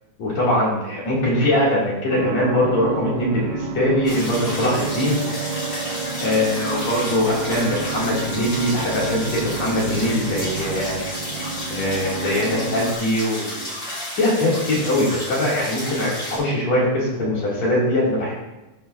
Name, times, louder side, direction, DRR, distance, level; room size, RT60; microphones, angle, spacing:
voice 1, 0.2-5.2 6.2-11.0 11.7-13.6 14.1-18.3, left 1 dB, 55° left, -7 dB, 3.8 m, -22 dB
sound 1, 2.1-12.9, right 5 dB, 90° right, 2.3 m, -30 dB
sound 2, 4.0-16.4, left 1 dB, 25° left, 3.0 m, -32 dB
13.5 x 6.1 x 2.7 m, 1.0 s
omnidirectional pair, 3.7 m